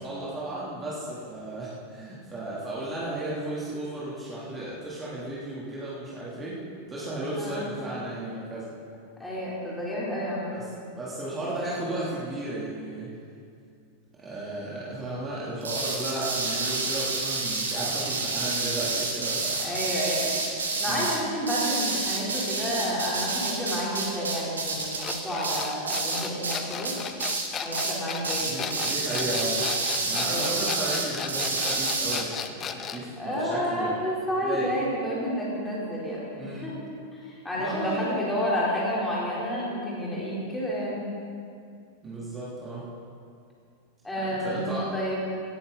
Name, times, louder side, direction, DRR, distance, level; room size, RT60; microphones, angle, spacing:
voice 1, 0.0-6.6 6.9-8.7 10.5-10.6 10.9-13.1 14.2-19.7 20.8-21.0 28.4-29.7 30.1-33.9 34.4-34.7 36.4-36.7 37.6-38.2 42.0-42.8 44.2-44.8, right 1 dB, 20° right, -8 dB, 3.2 m, -34 dB
voice 2, 7.4-7.7 9.2-10.5 19.6-20.4 20.8-27.0 27.6-28.8 30.0-30.5 33.2-36.8 37.1-41.1 44.0-45.2, equal, 5° left, -7 dB, 3.9 m, -30 dB
sound 1, 15.6-26.6 26.8-27.5 27.7-28.0 28.2-32.2, right 3 dB, 70° right, 1.8 m, -29 dB
sound 2, 25.0-33.1, left 8 dB, 25° left, 0.7 m, -35 dB
17.5 x 10.5 x 4.1 m, 2.3 s
figure-of-eight pair, 90°, 0 cm